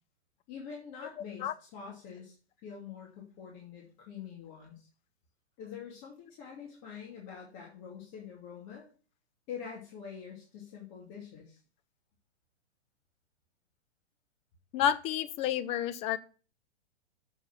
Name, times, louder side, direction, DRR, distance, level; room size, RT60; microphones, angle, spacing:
voice 1, 0.5-4.9 5.6-8.9 9.5-11.6, left 7 dB, 35° left, -2 dB, 2.5 m, -45 dB
voice 2, 14.7-16.2, left 10 dB, 20° left, 13 dB, 0.4 m, -30 dB
7.1 x 5.6 x 6.0 m, 0.38 s
hypercardioid pair, 115°, 33 cm